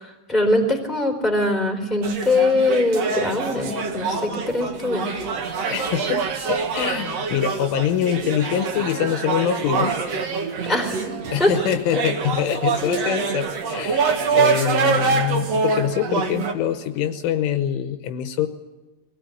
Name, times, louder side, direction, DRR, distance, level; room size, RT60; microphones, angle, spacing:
voice 1, 0.0-5.1 10.6-11.0 11.4-11.5 12.8-13.1, left 2 dB, ahead, 2 dB, 2.9 m, -22 dB
sound 1, 2.0-16.5, right 5 dB, 70° right, 1.5 m, -25 dB
voice 2, 5.7-10.0 11.3-18.5, left 9 dB, 75° left, 8 dB, 3.3 m, -24 dB
23.0 x 18.0 x 9.2 m, 1.1 s
omnidirectional pair, 5.9 m